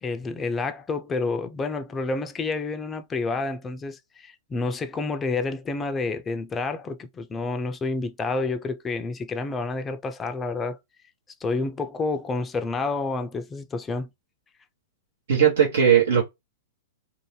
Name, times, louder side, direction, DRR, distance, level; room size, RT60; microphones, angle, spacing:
voice 1, 0.0-10.8 11.4-14.1, left 3 dB, 20° left, 0.4 m, -29 dB
voice 2, 15.3-16.2, right 8 dB, 75° right, 0.9 m, -18 dB
2.6 x 2.1 x 3.1 m
hypercardioid pair, 115°, 0 cm